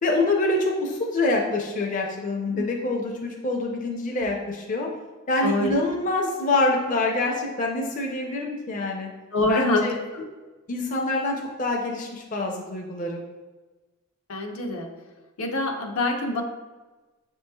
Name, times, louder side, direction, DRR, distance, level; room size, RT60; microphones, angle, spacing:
voice 1, 0.0-4.9 5.3-9.1 9.5-10.0 10.7-13.2, left 2 dB, 35° left, 1 dB, 0.4 m, -26 dB
voice 2, 5.4-5.7 9.3-9.9 10.1-10.2 14.3-14.9 15.4-16.4, left 2 dB, 80° left, 2 dB, 0.6 m, -25 dB
6.8 x 3.0 x 2.2 m, 1.2 s
head